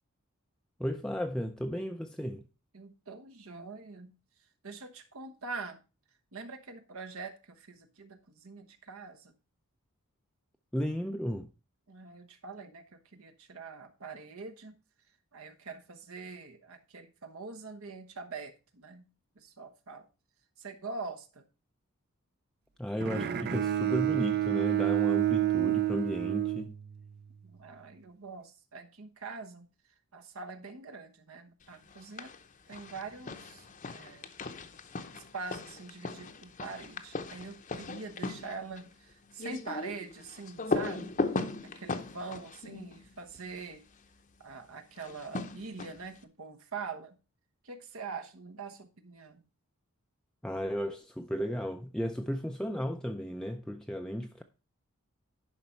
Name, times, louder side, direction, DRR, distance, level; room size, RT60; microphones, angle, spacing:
voice 1, 0.8-2.4 10.7-11.5 22.8-26.7 50.4-54.4, equal, 5° left, 0.4 m, -34 dB
voice 2, 2.7-4.1 4.6-5.8 6.3-9.3 11.9-12.8 13.1-14.8 15.3-19.0 19.4-20.1 20.6-21.5 27.4-29.7 30.1-32.3 32.7-33.7 33.9-34.3 35.1-41.2 41.6-43.8 44.4-47.2 47.6-49.4, right 4 dB, 70° right, 1.1 m, -44 dB
Bowed string instrument, 23.0-27.2, right 12 dB, 45° right, 0.5 m, -29 dB
sound 1, 31.9-32.4 32.7-43.7 45.0-46.2, left 3 dB, 35° left, 0.7 m, -38 dB
11.0 x 5.3 x 4.4 m
head